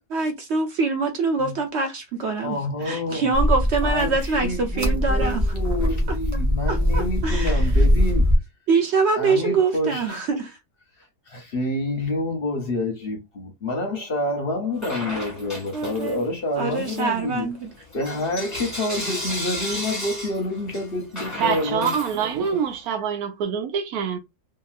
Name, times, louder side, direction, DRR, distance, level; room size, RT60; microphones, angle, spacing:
voice 1, 0.0-5.4 6.7-7.7 8.7-10.6 15.7-16.2 16.5-17.7, right 4 dB, 60° right, 0.8 m, -24 dB
voice 2, 2.4-3.3 3.8-8.4 9.1-10.2 11.3-17.5 17.9-21.9, left 1 dB, 50° left, 0.8 m, -28 dB
sound 1, 3.3-8.4, equal, 20° right, 0.4 m, -21 dB
Bell / Coin (dropping), 14.8-16.3 16.7-22.7, left 1 dB, 15° left, 1.0 m, -34 dB
voice 3, 21.4-24.2, right 7 dB, 80° right, 1.1 m, -25 dB
2.9 x 2.7 x 2.4 m
omnidirectional pair, 1.6 m